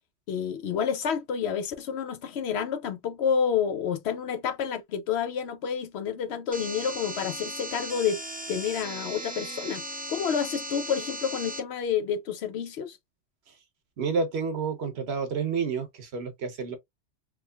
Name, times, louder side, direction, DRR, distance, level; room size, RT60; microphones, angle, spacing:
voice 1, 0.3-8.2 8.5-13.0, left 7 dB, 65° left, 0.8 m, -29 dB
sound 1, 6.5-11.6, right 1 dB, 10° right, 0.4 m, -37 dB
voice 2, 14.0-16.8, right 5 dB, 60° right, 1.1 m, -29 dB
3.6 x 3.0 x 2.2 m
omnidirectional pair, 1.3 m